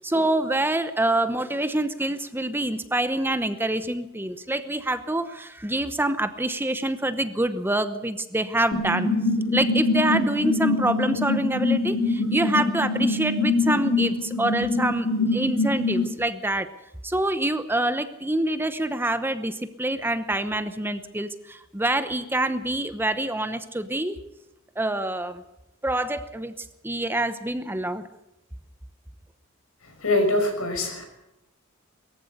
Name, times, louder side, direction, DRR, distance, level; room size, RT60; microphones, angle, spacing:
voice 1, 0.0-9.1 9.5-16.7 17.0-24.2 24.8-25.4 25.8-28.1, right 1 dB, 10° right, 11 dB, 0.9 m, -26 dB
sound 1, 8.7-16.1, left 3 dB, 70° left, 2.7 m, -24 dB
voice 2, 30.0-31.1, left 2 dB, 85° left, 4 dB, 6.2 m, -23 dB
22.0 x 14.5 x 8.1 m, 0.92 s
head